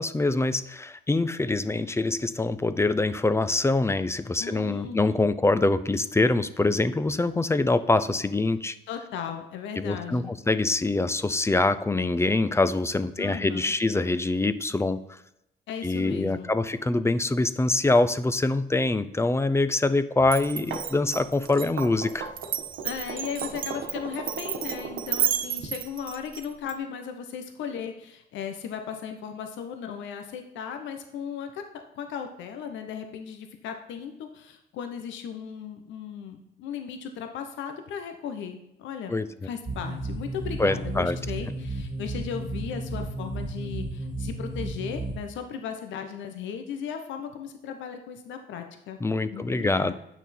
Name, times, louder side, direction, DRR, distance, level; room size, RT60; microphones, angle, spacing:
voice 1, 0.0-8.7 9.8-15.2 15.8-22.3 39.1-39.3 40.6-41.2 49.0-49.9, left 2 dB, 15° left, 13 dB, 0.5 m, -24 dB
voice 2, 4.4-5.2 8.9-10.3 13.2-13.7 15.7-16.5 22.8-31.6 31.9-39.2 39.4-49.0 49.3-49.9, left 7 dB, 90° left, 6 dB, 0.9 m, -36 dB
Glass, 20.3-26.7, right 9 dB, 50° right, 0.8 m, -32 dB
sound 1, 20.5-25.7, right 5 dB, 85° right, 1.4 m, -37 dB
sound 2, 39.7-45.2, right 2 dB, 20° right, 1.8 m, -33 dB
9.1 x 6.0 x 4.2 m, 0.84 s
cardioid pair, 95°, 19 cm